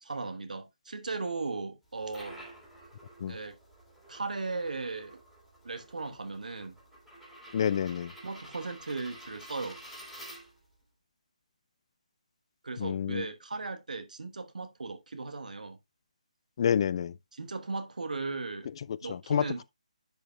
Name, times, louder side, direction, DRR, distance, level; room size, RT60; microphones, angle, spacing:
voice 1, 0.0-2.4 3.3-3.6 4.1-5.2 5.6-6.8 8.2-9.8 12.6-15.8 17.3-18.7 19.0-19.6, right 3 dB, 75° right, 1.2 m, -37 dB
sound 1, 1.8-10.8, right 1 dB, 5° left, 3.1 m, -50 dB
voice 2, 7.5-8.1 12.8-13.3 16.6-17.1 18.9-19.6, left 8 dB, 40° left, 0.3 m, -29 dB
10.5 x 5.2 x 2.2 m
figure-of-eight pair, 150°, 4 cm